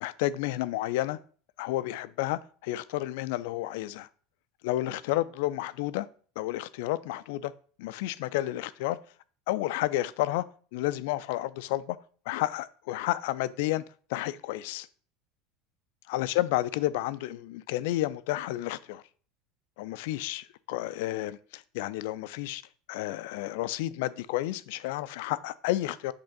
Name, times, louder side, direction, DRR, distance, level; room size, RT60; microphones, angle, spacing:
voice 1, 0.0-1.2 1.6-4.1 4.6-6.1 6.4-7.5 7.8-9.0 9.5-10.4 10.7-12.0 12.3-13.8 14.1-14.9 16.1-19.0 19.8-22.6 22.9-26.1, left 16 dB, 60° left, 0.3 m, -31 dB
5.4 x 3.4 x 5.3 m
figure-of-eight pair, 75°, 0 cm